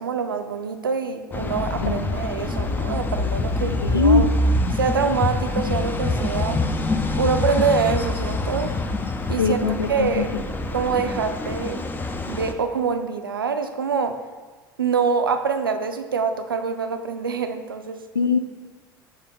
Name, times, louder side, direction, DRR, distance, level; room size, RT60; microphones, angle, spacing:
voice 1, 0.0-4.3 4.7-6.6 7.1-8.8 9.3-10.3 10.7-11.9 12.3-14.2 14.8-18.0, right 5 dB, 85° right, 8 dB, 0.4 m, -25 dB
sound 1, 1.3-12.5, left 2 dB, 15° left, 0.6 m, -25 dB
voice 2, 3.9-4.3 9.4-10.2 18.2-18.4, left 5 dB, 90° left, 9 dB, 0.4 m, -21 dB
5.3 x 4.3 x 5.1 m, 1.4 s
figure-of-eight pair, 70°, 11 cm